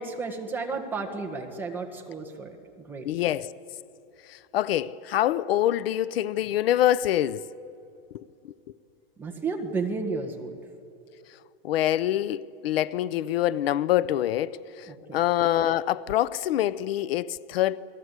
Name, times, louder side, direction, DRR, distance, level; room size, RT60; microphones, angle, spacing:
voice 1, 0.0-3.1 9.2-10.6 14.9-15.2, right 4 dB, 5° right, 1.4 m, -33 dB
voice 2, 3.0-3.5 4.3-7.5 8.1-8.2 11.6-17.8, left 12 dB, 80° left, 0.7 m, -25 dB
28.5 x 20.0 x 8.1 m
supercardioid pair, 175°, 30 cm